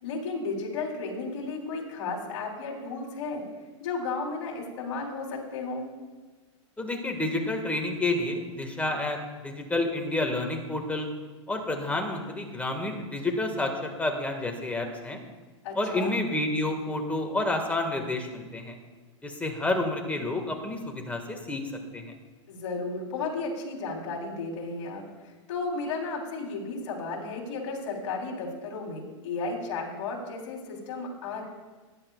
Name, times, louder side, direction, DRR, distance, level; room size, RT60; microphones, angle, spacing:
voice 1, 0.0-3.4 3.8-5.9 15.6-16.2 22.5-31.4, left 3 dB, 60° left, -1 dB, 3.5 m, -34 dB
voice 2, 6.8-9.2 9.4-11.1 11.5-15.2 15.7-18.7 19.2-21.6 21.9-22.1, left 2 dB, 10° left, 3 dB, 1.7 m, -29 dB
18.5 x 10.5 x 2.4 m, 1.3 s
hypercardioid pair, 115°, 16 cm